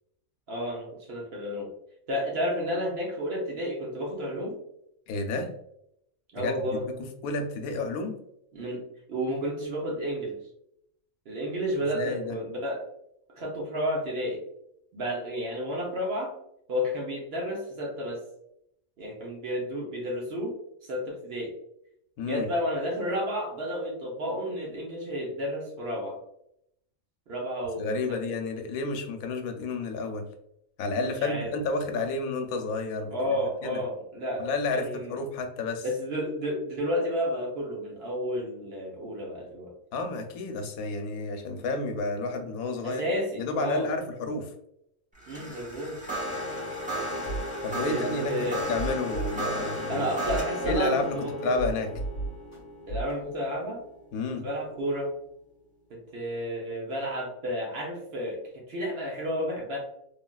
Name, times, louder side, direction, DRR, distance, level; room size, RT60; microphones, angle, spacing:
voice 1, 0.5-1.7 2.1-4.5 6.3-6.8 8.5-8.8 9.1-10.4 11.3-12.8 13.4-14.4 14.9-16.3 16.7-18.2 19.0-20.5 20.8-21.5 22.2-26.2 27.3-28.2 31.2-31.6 33.1-35.2 35.8-39.7 42.8-43.9 45.3-46.0 47.9-48.6 49.9-51.5 52.9-53.8 54.4-55.1 55.9-59.8, equal, 55° right, -1 dB, 0.8 m, -31 dB
voice 2, 5.1-5.5 6.4-8.1 11.9-12.4 22.2-22.5 27.8-30.3 30.8-33.1 33.6-33.8 34.4-35.8 39.9-43.1 43.4-44.5 47.6-50.1 50.6-51.9 54.1-54.4, left 3 dB, 90° left, 5 dB, 1.0 m, -31 dB
sound 1, 45.2-54.5, equal, 10° right, 0.5 m, -35 dB
sound 2, 47.3-47.4 48.0-48.1 48.6-49.6 50.1-51.2 51.6-52.6 52.9-53.1, right 3 dB, 10° left, 1.2 m, -33 dB
3.2 x 2.4 x 2.2 m, 0.76 s
omnidirectional pair, 1.5 m